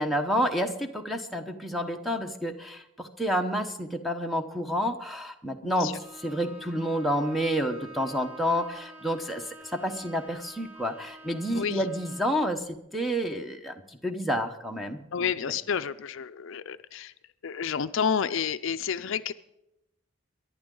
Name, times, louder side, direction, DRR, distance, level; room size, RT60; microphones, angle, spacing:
voice 1, 0.0-15.6, equal, ahead, 5 dB, 0.9 m, -29 dB
Bowed string instrument, 5.9-12.4, right 1 dB, 40° right, 3.8 m, -48 dB
voice 2, 15.1-17.1 17.4-19.3, left 7 dB, 60° left, 12 dB, 0.4 m, -30 dB
23.5 x 11.0 x 3.8 m, 0.85 s
head